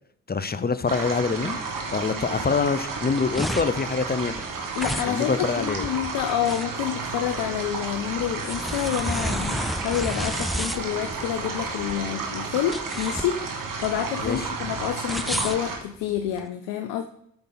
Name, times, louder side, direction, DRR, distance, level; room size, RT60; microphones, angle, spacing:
voice 1, 0.3-1.6 1.9-4.3 5.1-5.9 14.2-14.5, left 4 dB, 25° left, 13 dB, 0.8 m, -25 dB
sound 1, 0.9-15.8, right 4 dB, 60° right, 1.8 m, -32 dB
sound 2, 2.9-16.4, equal, ahead, 0.5 m, -32 dB
voice 2, 4.8-17.0, left 10 dB, 85° left, 7 dB, 0.6 m, -28 dB
8.8 x 5.8 x 4.0 m, 0.70 s
hypercardioid pair, 45°, 36 cm